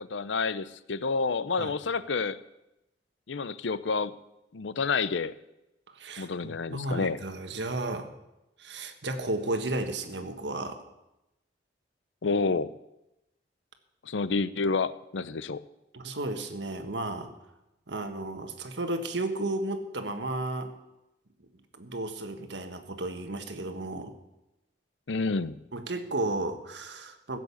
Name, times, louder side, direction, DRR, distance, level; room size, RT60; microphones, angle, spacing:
voice 1, 0.0-2.4 3.3-4.2 4.5-5.4 6.2-7.2 12.2-12.7 14.0-15.6 25.1-25.6, left 4 dB, 85° left, 16 dB, 0.6 m, -29 dB
voice 2, 5.9-8.1 8.6-10.8 15.9-17.3 17.9-20.7 21.7-24.1 25.7-27.4, right 2 dB, 70° right, 7 dB, 1.6 m, -33 dB
15.5 x 7.7 x 8.5 m, 0.93 s
head